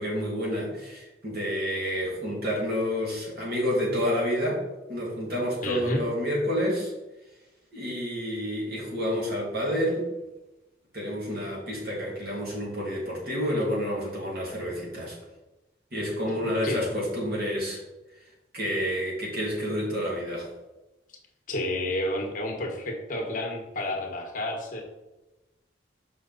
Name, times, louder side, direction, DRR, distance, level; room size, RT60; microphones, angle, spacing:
voice 1, 0.0-4.6 4.9-6.9 7.7-10.0 10.9-15.2 15.9-17.8 18.5-20.5, equal, 55° right, -4 dB, 2.5 m, -29 dB
voice 2, 5.6-6.0 16.6-16.8 21.5-24.8, left 1 dB, 45° left, 1 dB, 1.2 m, -30 dB
6.2 x 5.4 x 4.1 m, 1.0 s
head